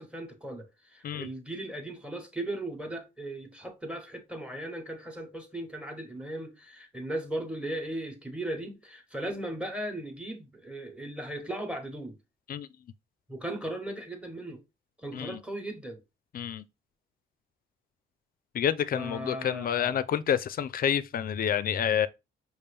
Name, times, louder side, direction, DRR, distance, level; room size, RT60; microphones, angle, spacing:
voice 1, 0.0-12.1 13.3-14.6 15.0-16.0 18.9-20.0, right 1 dB, 5° right, 1.1 m, -37 dB
voice 2, 16.3-16.6 18.5-22.1, left 9 dB, 45° left, 0.5 m, -28 dB
5.2 x 2.5 x 3.3 m
cardioid pair, 90°, 20 cm